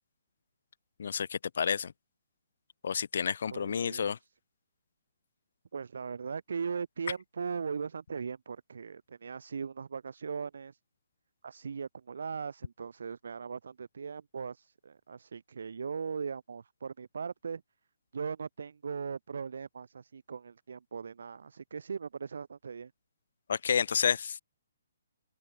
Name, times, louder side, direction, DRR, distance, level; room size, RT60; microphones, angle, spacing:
voice 1, 1.0-1.9 2.8-4.2 23.5-24.4, left 7 dB, 55° left, 2.9 m, -30 dB
voice 2, 3.5-4.1 5.7-10.8 11.4-17.6 18.1-22.9, right 6 dB, 65° right, 6.8 m, -39 dB
open air
hypercardioid pair, 175°, 0 cm